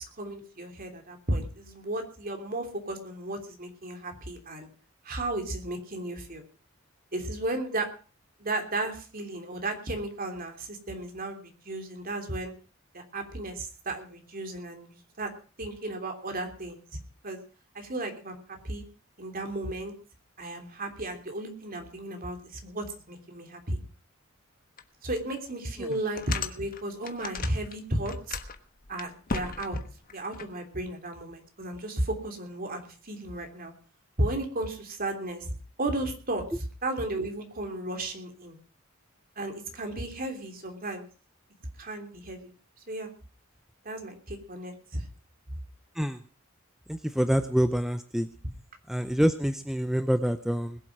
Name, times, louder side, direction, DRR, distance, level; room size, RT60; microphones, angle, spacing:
voice 1, 0.0-4.7 5.0-6.4 7.1-7.9 8.4-12.5 12.9-15.3 15.6-16.8 17.2-17.4 17.7-18.4 18.6-18.8 19.2-19.9 20.4-23.8 25.0-28.4 28.9-29.8 30.1-33.7 34.2-35.5 35.8-38.6 39.4-41.1 41.8-42.5 42.9-43.1 43.8-45.1, right 1 dB, 45° right, 4 dB, 3.2 m, -34 dB
sound 1, 24.8-24.9 25.4-25.5 25.9-27.7 28.0-30.5, left 4 dB, 45° left, 1.3 m, -36 dB
voice 2, 46.9-48.3 48.9-50.8, equal, ahead, 9 dB, 0.6 m, -26 dB
21.0 x 7.8 x 6.0 m, 0.38 s
head